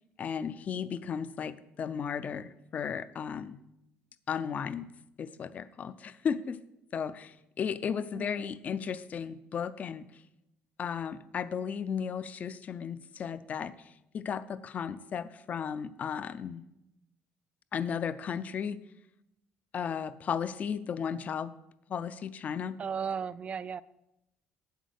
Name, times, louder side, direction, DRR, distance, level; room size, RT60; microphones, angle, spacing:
voice 1, 0.2-3.6 4.3-4.9 5.2-6.6 6.9-10.1 10.8-16.7 17.7-18.8 19.7-21.5 21.9-22.7, left 7 dB, 35° left, 15 dB, 0.4 m, -35 dB
voice 2, 8.1-8.6 22.8-23.8, right 6 dB, 30° right, 18 dB, 0.3 m, -36 dB
8.2 x 8.1 x 6.4 m, 0.88 s
cardioid pair, 155°, 4 cm